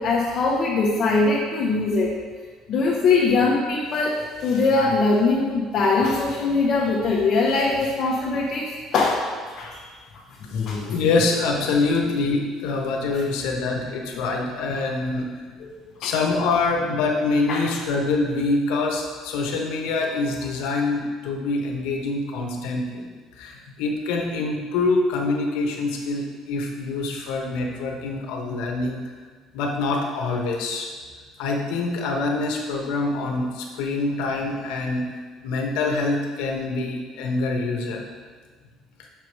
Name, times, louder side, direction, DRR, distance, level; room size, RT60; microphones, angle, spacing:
voice 1, 0.0-2.1 2.7-9.3 9.6-9.8 10.5-10.9 16.0-16.1 17.5-17.6, left 3 dB, 50° left, -5 dB, 1.1 m, -21 dB
voice 2, 10.9-15.3 16.0-23.1 23.4-29.0 29.5-30.9 31.4-35.1 35.4-38.0, left 3 dB, 90° left, 1 dB, 1.1 m, -25 dB
6.5 x 4.8 x 4.7 m, 1.5 s
cardioid pair, 130°, 0 cm